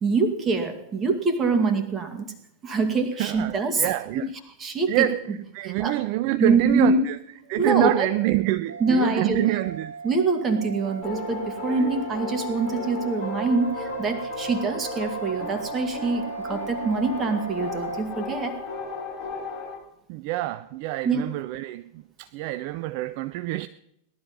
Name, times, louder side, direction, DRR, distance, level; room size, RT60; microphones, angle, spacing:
voice 1, 0.0-2.3 2.6-4.3 4.6-5.1 5.6-6.0 6.4-7.1 7.6-8.1 8.8-9.4 10.0-18.6 21.0-21.3, right 3 dB, 25° right, 2.2 m, -24 dB
voice 2, 3.2-4.3 4.9-5.2 5.5-7.2 7.5-9.9 11.8-11.9 20.1-23.7, right 16 dB, 45° right, 0.5 m, -26 dB
sound 1, 8.7-18.0, right 4 dB, 65° right, 0.9 m, -37 dB
sound 2, 11.0-19.7, left 4 dB, 40° left, 5.0 m, -35 dB
18.0 x 12.0 x 5.6 m
figure-of-eight pair, 90°, 0 cm